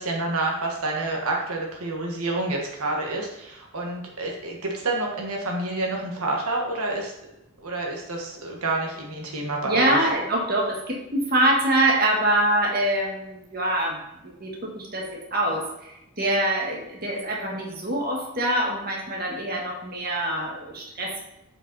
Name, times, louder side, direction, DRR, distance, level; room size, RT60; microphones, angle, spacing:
voice 1, 0.0-7.1 7.6-10.0, right 2 dB, 85° right, -1 dB, 1.6 m, -28 dB
voice 2, 9.6-21.2, right 1 dB, 40° right, -2 dB, 1.7 m, -25 dB
7.6 x 5.4 x 4.2 m, 0.88 s
head